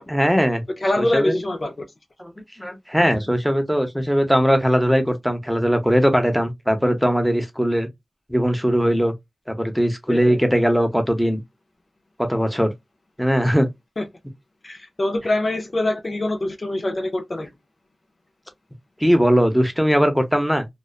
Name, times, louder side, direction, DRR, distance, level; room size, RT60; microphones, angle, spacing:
voice 1, 0.1-0.6 1.0-1.4 2.2-2.3 2.6-7.9 8.3-9.1 9.5-11.4 12.3-12.7 13.2-13.7 19.0-20.7, equal, 5° left, 0.8 m, -19 dB
voice 2, 0.8-1.9 10.1-10.4 14.0-14.1 14.6-17.5, left 1 dB, 55° left, 0.5 m, -24 dB
2.6 x 2.1 x 2.3 m
cardioid pair, 45°, 0 cm